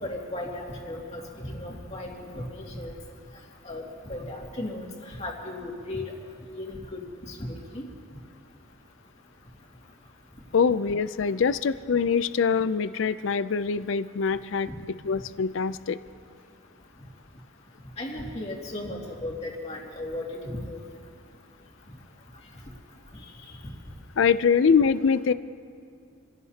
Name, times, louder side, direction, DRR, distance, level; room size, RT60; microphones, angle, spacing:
voice 1, 0.0-2.9 3.6-4.9 5.2-6.1 6.6-7.9 14.7-14.8 18.0-20.8, left 1 dB, 30° left, -2 dB, 2.3 m, -36 dB
voice 2, 10.5-14.7 15.0-16.0 24.2-25.3, left 6 dB, 70° left, 14 dB, 0.4 m, -23 dB
29.0 x 16.5 x 2.9 m, 2.4 s
head